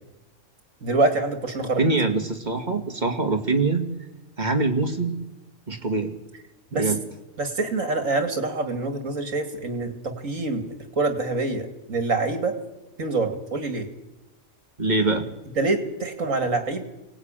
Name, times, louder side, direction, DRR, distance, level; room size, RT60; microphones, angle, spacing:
voice 1, 0.8-1.8 6.7-6.9 7.4-10.6 11.0-12.5 13.0-13.9 15.6-16.8, right 3 dB, 70° right, 7 dB, 2.7 m, -25 dB
voice 2, 1.8-3.9 4.4-5.2 5.7-6.1 6.7-7.0 14.8-15.3, right 3 dB, 30° right, 4 dB, 2.3 m, -23 dB
24.0 x 18.5 x 9.0 m, 1.0 s
omnidirectional pair, 1.4 m